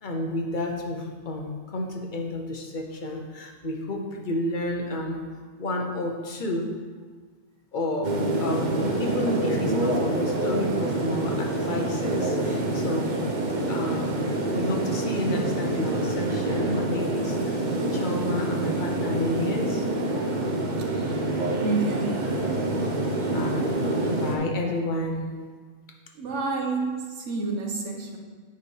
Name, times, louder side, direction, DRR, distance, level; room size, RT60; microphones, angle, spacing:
voice 1, 0.0-5.2 5.6-6.7 7.7-13.2 13.7-14.3 14.5-17.6 17.9-19.8 23.3-23.7 24.2-25.3, left 1 dB, 45° left, 1 dB, 1.1 m, -30 dB
sound 1, 8.0-24.4, right 2 dB, 45° right, 0.9 m, -26 dB
voice 2, 21.6-22.2 26.2-28.2, right 3 dB, 75° right, 2 dB, 1.3 m, -28 dB
9.6 x 4.5 x 4.6 m, 1.5 s
omnidirectional pair, 1.2 m